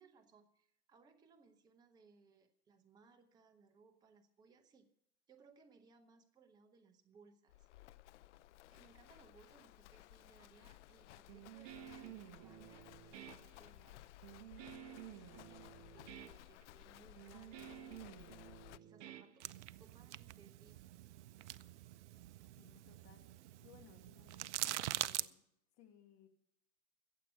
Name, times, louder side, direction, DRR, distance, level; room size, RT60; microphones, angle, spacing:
voice 1, 0.0-4.9 5.3-7.7 8.7-14.2 14.6-18.3 18.7-20.8, right 5 dB, 10° right, 7 dB, 0.7 m, -66 dB
Livestock farm animals working animals, 7.5-18.8, left 15 dB, 50° left, 0.5 m, -58 dB
Guitar, 11.3-19.9, right 11 dB, 30° right, 1.0 m, -53 dB
sound 1, 19.4-25.3, right 14 dB, 50° right, 0.5 m, -44 dB
voice 2, 22.6-25.5 25.8-26.3, left 9 dB, 35° left, 5 dB, 2.1 m, -64 dB
15.5 x 7.6 x 8.1 m, 0.75 s
hypercardioid pair, 130°, 45 cm